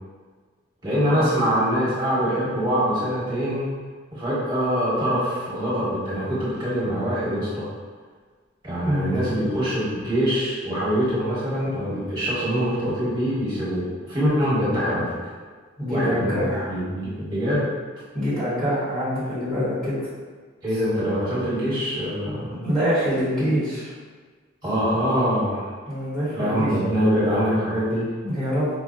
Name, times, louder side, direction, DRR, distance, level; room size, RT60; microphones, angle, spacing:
voice 1, 0.8-3.6 4.1-7.7 8.6-15.1 15.9-16.4 16.7-17.7 20.6-22.5 24.6-25.7 26.3-28.1, equal, 25° right, -10 dB, 1.4 m, -24 dB
voice 2, 8.8-9.2 15.8-16.7 18.1-20.0 22.5-23.9 25.9-26.7 28.2-28.7, equal, ahead, -13 dB, 1.0 m, -25 dB
4.9 x 2.2 x 2.6 m, 1.5 s
head